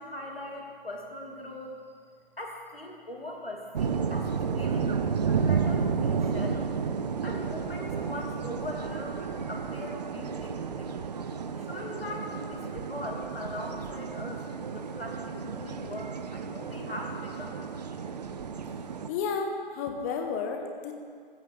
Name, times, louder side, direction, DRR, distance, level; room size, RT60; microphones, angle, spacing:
voice 1, 0.0-1.8 2.4-5.0 5.2-6.7 7.2-10.9 11.6-14.4 14.7-17.6, left 1 dB, 80° left, 0 dB, 2.6 m, -40 dB
sound 1, 3.7-19.1, right 6 dB, 45° right, 0.7 m, -32 dB
voice 2, 19.1-20.9, left 5 dB, 15° left, 4 dB, 0.7 m, -32 dB
15.0 x 6.5 x 6.5 m, 2.1 s
figure-of-eight pair, 135°, 29 cm